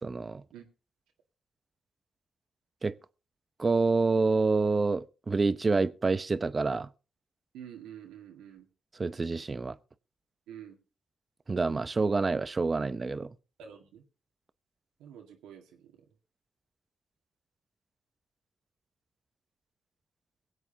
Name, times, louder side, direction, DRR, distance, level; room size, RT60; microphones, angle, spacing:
voice 1, 0.0-0.4 2.8-2.9 3.6-6.9 8.9-9.8 11.5-13.4, right 3 dB, 40° right, 0.8 m, -27 dB
voice 2, 7.5-8.7 10.5-10.8 13.6-14.0 15.0-15.9, right 9 dB, 90° right, 2.0 m, -48 dB
22.5 x 8.1 x 2.8 m
supercardioid pair, 50°, 0 cm